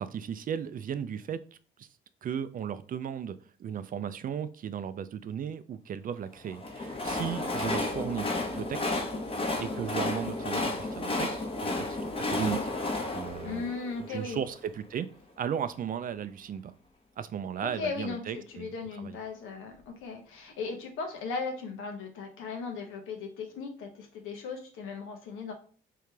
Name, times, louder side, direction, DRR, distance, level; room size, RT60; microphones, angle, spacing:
voice 1, 0.0-1.4 1.8-1.9 2.2-8.9 9.6-12.6 13.1-13.8 14.1-15.1 15.4-16.7 17.2-18.7 19.0-19.1, right 8 dB, 45° right, 13 dB, 0.4 m, -35 dB
Train, 6.5-14.6, left 2 dB, 30° left, 0.9 m, -32 dB
voice 2, 13.4-14.4 17.6-25.5, left 4 dB, 90° left, 3 dB, 1.0 m, -37 dB
3.7 x 3.2 x 3.3 m, 0.41 s
cardioid pair, 90°, 20 cm